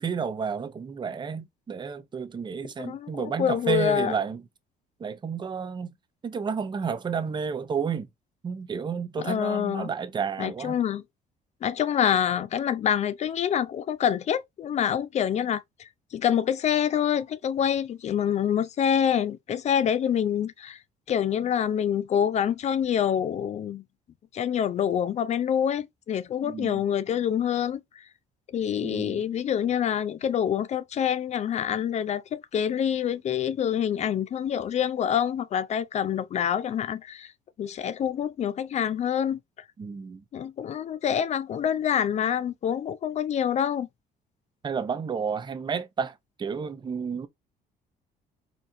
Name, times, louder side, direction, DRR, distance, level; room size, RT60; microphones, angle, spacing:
voice 1, 0.0-4.4 5.0-5.9 6.2-8.1 8.4-10.8 26.4-26.8 28.8-29.2 39.8-40.2 44.6-47.3, right 6 dB, 25° right, 0.6 m, -31 dB
voice 2, 2.8-4.1 9.2-9.9 10.4-11.0 11.6-20.8 21.1-23.8 24.3-28.0 28.5-37.3 37.6-39.4 40.3-43.9, left 9 dB, 40° left, 0.4 m, -26 dB
4.3 x 2.5 x 2.5 m
cardioid pair, 110°, 17 cm